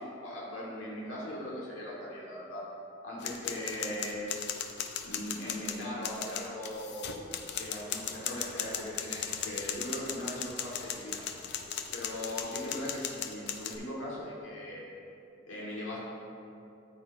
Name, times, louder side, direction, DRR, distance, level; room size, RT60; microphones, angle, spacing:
voice 1, 0.0-2.6 3.0-4.3 5.0-7.2 7.6-11.3 11.9-14.8 15.5-16.0, left 1 dB, 85° left, -6 dB, 1.5 m, -39 dB
sound 1, 3.2-13.8, left 8 dB, 60° left, 0.5 m, -37 dB
12.5 x 4.3 x 2.5 m, 2.6 s
head